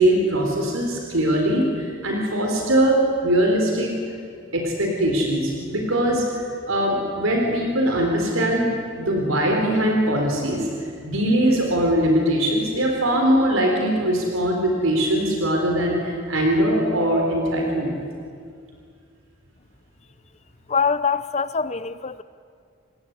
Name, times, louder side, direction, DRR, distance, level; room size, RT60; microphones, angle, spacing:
voice 1, 0.0-3.9 4.5-10.7 11.0-18.0, right 1 dB, 75° right, 4.2 m, -21 dB
voice 2, 20.7-22.2, left 5 dB, 30° left, 0.6 m, -23 dB
28.0 x 20.0 x 9.7 m
head